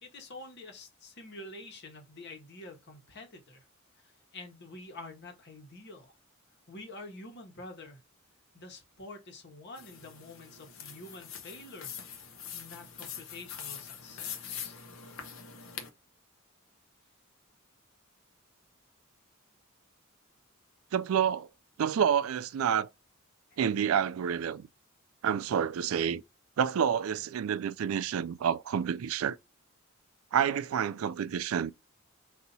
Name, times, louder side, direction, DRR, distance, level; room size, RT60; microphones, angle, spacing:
voice 1, 0.0-3.6 4.0-6.2 6.7-8.0 8.5-11.9 12.2-14.8 23.5-23.6, left 2 dB, 55° left, 1.3 m, -47 dB
sound 1, 9.8-15.9, left 7 dB, 75° left, 0.9 m, -43 dB
voice 2, 20.9-21.5 21.8-22.9 23.6-24.7 25.2-26.2 26.6-29.4 30.3-31.7, right 8 dB, 75° right, 0.3 m, -28 dB
4.1 x 2.7 x 4.0 m
head